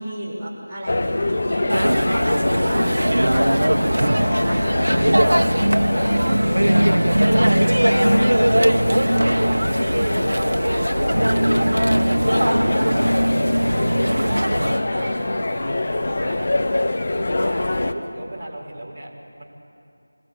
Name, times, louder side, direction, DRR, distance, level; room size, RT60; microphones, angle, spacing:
voice 1, 0.0-5.2 14.4-15.6, right 1 dB, 5° right, -17 dB, 3.7 m, -32 dB
sound 1, 0.9-17.9, left 2 dB, 45° left, 1.1 m, -25 dB
sound 2, 1.2-14.9, left 1 dB, 30° left, 8.0 m, -45 dB
sound 3, 1.7-14.8, right 1 dB, 80° right, 1.1 m, -19 dB
voice 2, 3.7-4.5 5.1-9.7 10.1-13.3 13.7-14.4 14.8-15.1 15.5-16.5 17.1-19.4, right 1 dB, 25° right, -8 dB, 4.4 m, -36 dB
26.0 x 21.0 x 8.4 m, 2.8 s
figure-of-eight pair, 170°, 0 cm